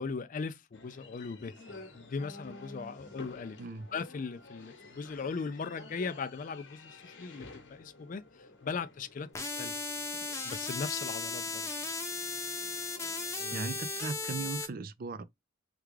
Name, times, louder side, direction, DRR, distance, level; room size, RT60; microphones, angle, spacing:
voice 1, 0.0-3.6 3.9-9.7 10.4-11.7 13.4-13.7, left 5 dB, 45° left, 0.4 m, -39 dB
sound 1, 0.7-14.4, left 2 dB, 70° left, 1.0 m, -52 dB
sound 2, 9.3-14.7, left 3 dB, 15° left, 0.7 m, -36 dB
voice 2, 13.5-15.2, right 4 dB, 50° right, 0.4 m, -37 dB
3.4 x 2.4 x 3.1 m
head